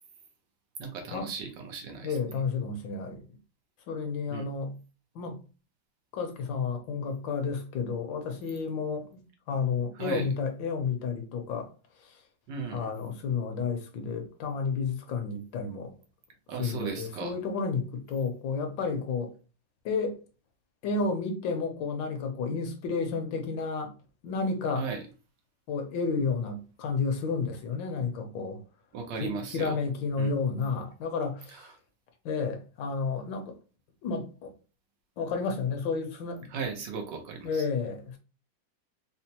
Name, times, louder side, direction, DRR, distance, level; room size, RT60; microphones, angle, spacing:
voice 1, 0.8-2.2 4.3-4.4 9.9-10.3 12.5-12.9 16.5-17.3 24.7-25.0 28.9-29.8 30.2-30.3 31.5-31.7 36.5-37.7, right 5 dB, 70° right, 1.4 m, -36 dB
voice 2, 2.0-3.2 3.9-4.7 5.1-5.4 6.1-11.7 12.0-12.2 12.7-15.9 16.6-19.3 19.8-20.2 20.8-23.9 24.2-24.9 25.7-28.6 29.2-31.7 32.2-33.6 34.0-34.5 35.2-36.5 37.4-38.2, left 4 dB, 80° left, 1.4 m, -31 dB
4.2 x 2.1 x 2.8 m
omnidirectional pair, 2.0 m